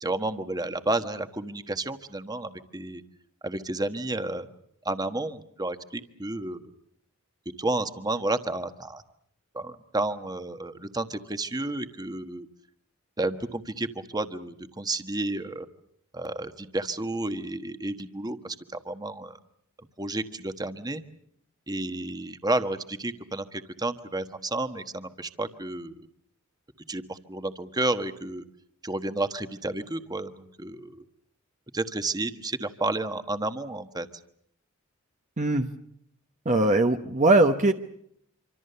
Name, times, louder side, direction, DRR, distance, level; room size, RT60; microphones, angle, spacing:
voice 1, 0.0-3.0 3.4-4.5 4.8-6.7 7.6-9.0 9.5-12.5 13.2-15.7 16.1-19.4 20.0-21.0 21.7-25.9 26.9-28.4 28.8-31.0 31.7-34.1, right 2 dB, 20° right, 9 dB, 1.3 m, -31 dB
voice 2, 35.4-35.7 36.4-37.7, right 2 dB, 35° right, 5 dB, 1.0 m, -20 dB
26.0 x 25.5 x 6.8 m, 0.71 s
head